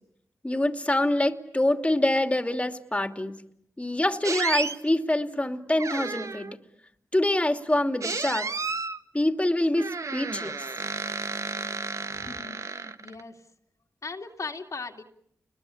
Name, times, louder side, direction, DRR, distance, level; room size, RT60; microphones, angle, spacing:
voice 1, 0.4-3.4 3.8-6.5 7.1-8.5 9.1-10.7, left 1 dB, 20° left, 6 dB, 2.7 m, -25 dB
sound 1, 4.2-4.8 5.8-6.5 8.0-9.0 9.8-13.2, right 4 dB, 60° right, 1.6 m, -32 dB
voice 2, 12.2-13.4 14.0-15.0, left 4 dB, 60° left, 4 dB, 2.6 m, -38 dB
29.5 x 21.5 x 8.6 m, 0.75 s
cardioid pair, 40°, 6 cm